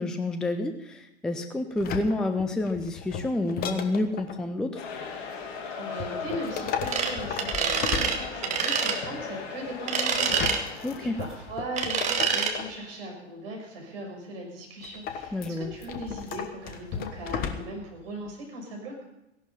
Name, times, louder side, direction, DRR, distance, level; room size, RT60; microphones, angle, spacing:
voice 1, 0.0-4.8 10.8-11.2 15.3-15.7, left 2 dB, ahead, 8 dB, 0.5 m, -29 dB
sound 1, 1.8-4.4 6.0-8.7 10.1-12.8 14.8-17.9 18.3-18.4, left 7 dB, 25° left, 1.2 m, -35 dB
sound 2, 4.7-11.6, left 5 dB, 45° left, 2.6 m, -38 dB
voice 2, 5.7-19.0, right 1 dB, 50° right, 0 dB, 6.0 m, -38 dB
sound 3, 6.9-7.1 7.4-8.2 8.4-9.0 9.9-10.6 11.8-12.5, right 6 dB, 20° right, 1.6 m, -26 dB
16.0 x 11.5 x 5.6 m, 0.89 s
figure-of-eight pair, 105°, 36 cm